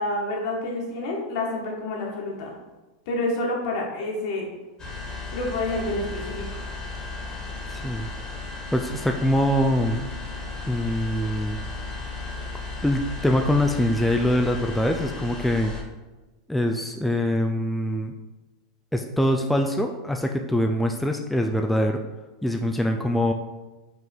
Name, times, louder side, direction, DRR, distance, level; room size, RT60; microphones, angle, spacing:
voice 1, 0.0-2.5 3.1-4.5 5.3-6.5, left 2 dB, 65° left, -1 dB, 1.8 m, -28 dB
sound 1, 4.8-15.8, left 3 dB, 25° left, 1.5 m, -35 dB
voice 2, 7.7-8.1 8.7-10.1 10.7-11.6 12.8-15.7 16.5-18.1 18.9-22.0 22.4-23.3, left 1 dB, ahead, 3 dB, 0.4 m, -23 dB
5.5 x 3.8 x 4.6 m, 1.2 s
supercardioid pair, 125°, 3 cm